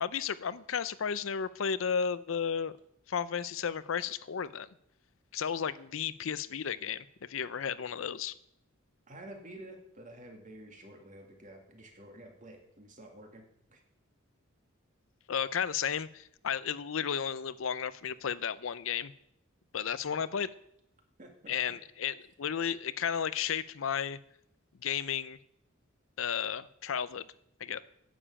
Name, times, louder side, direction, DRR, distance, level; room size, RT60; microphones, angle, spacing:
voice 1, 0.0-2.7 3.1-4.7 5.3-8.3 15.3-19.1 19.7-20.5 21.5-24.2 24.8-25.4 26.2-27.3 27.6-27.8, left 7 dB, 75° left, 16 dB, 0.5 m, -33 dB
voice 2, 9.1-13.4 13.7-13.8 21.2-21.5, right 1 dB, 40° right, 3 dB, 2.4 m, -50 dB
10.0 x 7.3 x 8.6 m, 0.74 s
head